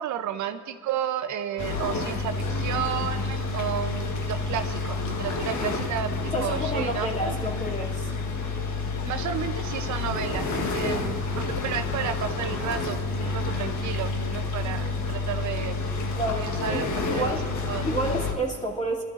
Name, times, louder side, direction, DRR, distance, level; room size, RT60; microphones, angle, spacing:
voice 1, 0.0-7.3 9.0-10.5 10.7-15.8 16.4-17.4 17.7-17.9, right 9 dB, 70° right, 8 dB, 0.7 m, -32 dB
sound 1, 1.6-18.3, left 3 dB, 75° left, 1.5 m, -29 dB
voice 2, 6.3-8.1 10.7-11.0 14.6-15.0 16.1-17.5 17.8-19.0, right 1 dB, 20° left, -2 dB, 2.5 m, -30 dB
24.0 x 12.5 x 2.5 m, 2.1 s
cardioid pair, 90°, 30 cm